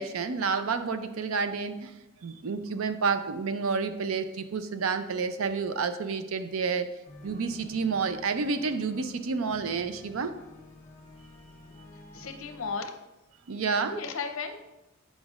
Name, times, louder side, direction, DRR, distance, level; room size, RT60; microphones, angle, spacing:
voice 1, 0.0-6.9 7.2-10.3 13.5-13.9, right 5 dB, 70° right, 10 dB, 0.5 m, -29 dB
sound 1, 7.1-12.8, left 2 dB, 35° left, 0.9 m, -51 dB
voice 2, 12.1-12.9 13.8-14.6, left 4 dB, 70° left, 6 dB, 0.6 m, -35 dB
7.9 x 5.1 x 2.4 m, 0.98 s
head